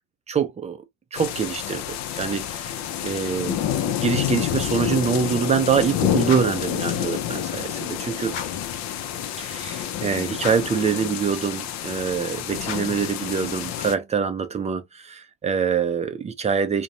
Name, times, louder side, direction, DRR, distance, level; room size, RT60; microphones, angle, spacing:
voice 1, 0.3-0.8 1.1-2.8 3.0-8.3 9.4-16.8, right 6 dB, 20° right, 0.4 m, -25 dB
sound 1, 1.2-14.0, left 10 dB, 50° left, 0.5 m, -28 dB
sound 2, 6.2-6.7 8.3-8.7 10.3-10.8 12.6-13.1, left 7 dB, 85° left, 0.7 m, -36 dB
2.4 x 2.2 x 2.9 m
supercardioid pair, 90°, 37 cm